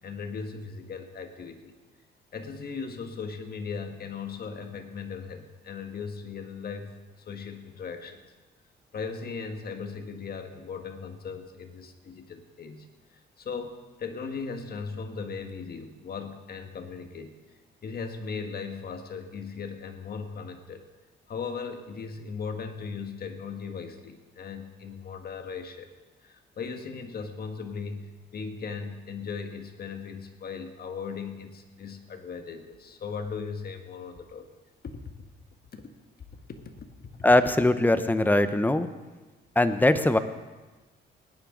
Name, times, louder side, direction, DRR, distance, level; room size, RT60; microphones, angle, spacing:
voice 1, 0.0-1.7 2.3-8.2 8.9-17.3 17.8-20.8 21.3-25.9 26.2-34.5 34.8-35.0 35.7-35.8 36.3-37.3, left 5 dB, 50° left, 6 dB, 1.6 m, -38 dB
voice 2, 37.2-38.9 39.6-40.2, left 1 dB, 10° left, 11 dB, 0.8 m, -21 dB
19.0 x 10.5 x 3.9 m, 1.2 s
cardioid pair, 90°, 20 cm